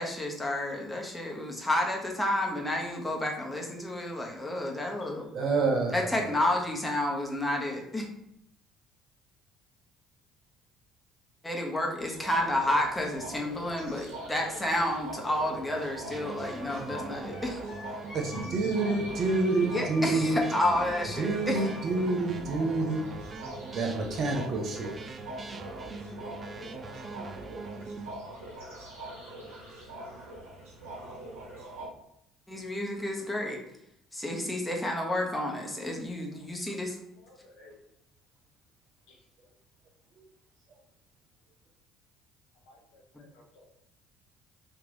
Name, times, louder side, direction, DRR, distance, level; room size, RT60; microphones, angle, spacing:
voice 1, 0.0-5.3 5.9-8.1 11.4-17.6 19.6-21.7 32.5-33.6 34.1-37.0, left 1 dB, 10° left, 0 dB, 1.1 m, -30 dB
voice 2, 5.3-6.2 18.1-20.4 21.2-23.0 23.7-24.9, right 3 dB, 50° right, 2 dB, 0.8 m, -28 dB
sound 1, 12.0-31.9, right 1 dB, 70° right, 1.6 m, -43 dB
sound 2, 16.1-28.1, right 3 dB, 35° right, 0.4 m, -42 dB
Wind instrument woodwind instrument, 16.4-22.1, left 1 dB, 35° left, 1.5 m, -45 dB
voice 3, 37.1-37.8 39.1-39.2 42.6-43.7, left 2 dB, 65° left, -1 dB, 1.0 m, -57 dB
3.4 x 2.9 x 3.9 m, 0.76 s
figure-of-eight pair, 55°, 0 cm